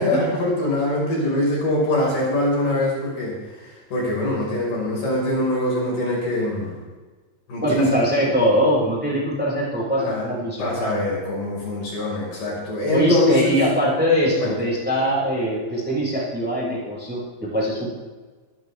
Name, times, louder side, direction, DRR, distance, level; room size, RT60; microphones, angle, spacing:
voice 1, 0.0-6.8 7.5-7.8 10.0-10.3 10.6-13.6 14.4-14.6, left 1 dB, 55° left, -4 dB, 7.4 m, -23 dB
voice 2, 7.6-10.9 12.9-18.0, equal, ahead, -6 dB, 6.2 m, -22 dB
26.5 x 12.5 x 3.7 m, 1.3 s
omnidirectional pair, 5.6 m